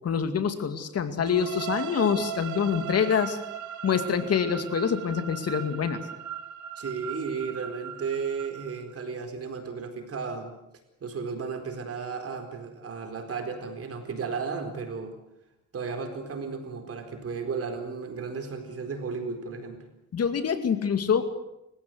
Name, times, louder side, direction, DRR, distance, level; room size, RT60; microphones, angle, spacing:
voice 1, 0.0-3.4 3.8-6.0 20.1-21.3, left 7 dB, 55° left, 9 dB, 2.4 m, -26 dB
sound 1, 1.2-9.0, right 10 dB, 80° right, 1.7 m, -38 dB
voice 2, 6.8-10.5 11.0-15.1 15.7-19.8, right 5 dB, 50° right, 5 dB, 4.4 m, -34 dB
28.5 x 15.5 x 8.0 m, 0.86 s
cardioid pair, 90°, 30 cm